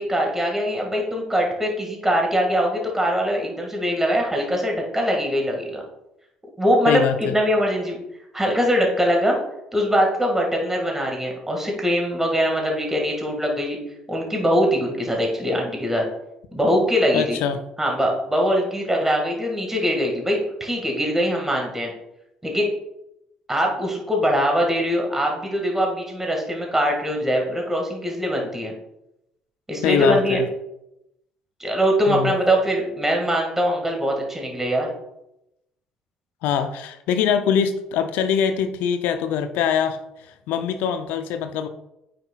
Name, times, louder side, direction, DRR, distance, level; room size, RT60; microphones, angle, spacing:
voice 1, 0.0-5.8 6.6-8.0 8.3-9.4 9.7-13.8 14.1-16.0 16.5-17.4 17.8-21.9 22.4-22.7 23.5-28.7 29.7-30.4 31.6-34.9, equal, 10° right, 0 dB, 2.1 m, -22 dB
voice 2, 6.9-7.3 17.1-17.6 29.8-30.5 32.1-32.3 36.4-41.7, left 7 dB, 65° left, 9 dB, 0.6 m, -23 dB
8.8 x 5.9 x 2.5 m, 0.86 s
hypercardioid pair, 55°, 3 cm